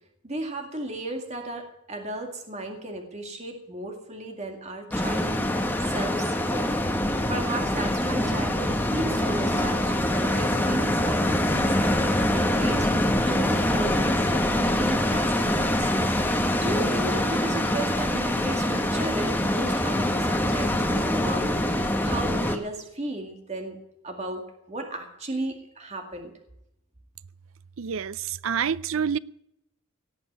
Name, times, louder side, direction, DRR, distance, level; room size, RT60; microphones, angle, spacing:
voice 1, 0.2-5.4 5.8-6.8 7.3-15.9 16.6-23.8 24.0-26.3, right 2 dB, 30° right, 2.1 m, -35 dB
sound 1, 4.9-22.6, left 1 dB, 10° left, 1.2 m, -24 dB
voice 2, 27.8-29.2, right 7 dB, 60° right, 0.5 m, -27 dB
17.5 x 7.0 x 9.2 m
head